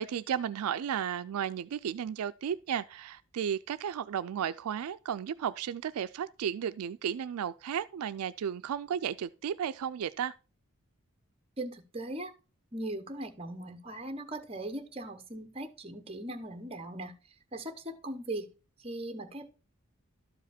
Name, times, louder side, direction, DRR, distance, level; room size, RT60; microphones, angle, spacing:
voice 1, 0.0-10.3, right 8 dB, 75° right, 0.3 m, -34 dB
voice 2, 11.6-12.3 12.7-17.1 17.5-18.5 18.8-19.5, right 1 dB, 25° right, 0.9 m, -39 dB
12.5 x 5.0 x 4.2 m
head